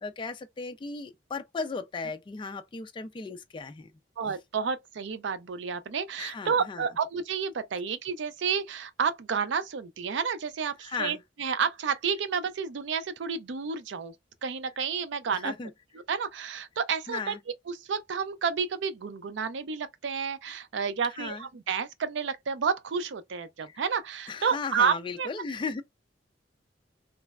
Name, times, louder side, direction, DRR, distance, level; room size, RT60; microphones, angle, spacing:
voice 1, 0.0-3.9 6.2-6.9 10.8-11.2 15.3-15.7 17.1-17.4 21.2-21.5 23.6-23.8 24.3-25.8, left 4 dB, 25° left, 0.3 m, -36 dB
voice 2, 4.2-14.1 14.4-15.5 16.1-17.3 17.7-25.3, right 6 dB, 75° right, 0.4 m, -30 dB
3.1 x 2.0 x 2.2 m
head